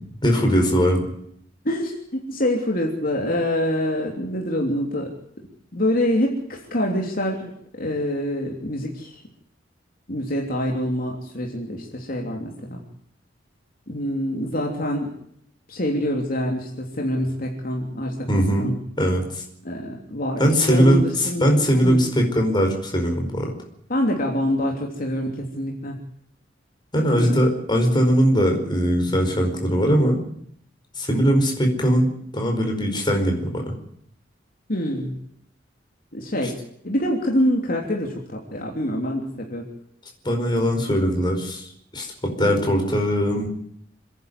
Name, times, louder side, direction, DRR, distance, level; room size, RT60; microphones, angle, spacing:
voice 1, 0.2-1.0 18.3-18.7 19.0-19.4 20.4-23.5 26.9-30.2 31.0-33.7 40.2-41.6 41.9-43.5, equal, 25° left, 2 dB, 5.0 m, -20 dB
voice 2, 1.6-5.1 5.7-9.2 10.1-12.8 13.9-15.1 15.7-18.8 19.6-21.5 21.8-22.0 23.9-26.0 27.1-27.4 34.7-35.2 36.1-36.6 36.8-39.7 42.4-42.7, equal, 50° left, 0 dB, 3.2 m, -26 dB
27.5 x 11.0 x 9.7 m, 0.70 s
head